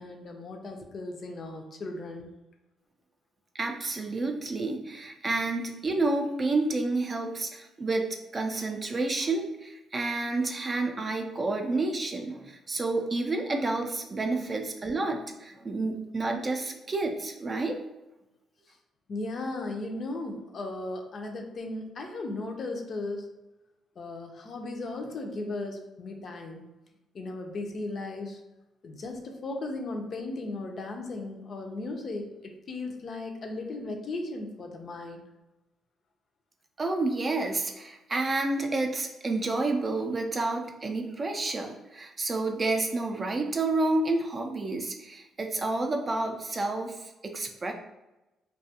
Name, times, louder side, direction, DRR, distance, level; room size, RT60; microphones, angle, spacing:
voice 1, 0.0-2.4 19.1-23.3 24.0-26.7 27.1-28.4 28.8-35.2, left 2 dB, 50° left, 3 dB, 0.5 m, -36 dB
voice 2, 3.5-8.1 8.3-17.8 36.8-47.7, right 2 dB, 35° right, 3 dB, 0.3 m, -29 dB
2.4 x 2.3 x 2.7 m, 0.98 s
cardioid pair, 90°, 0 cm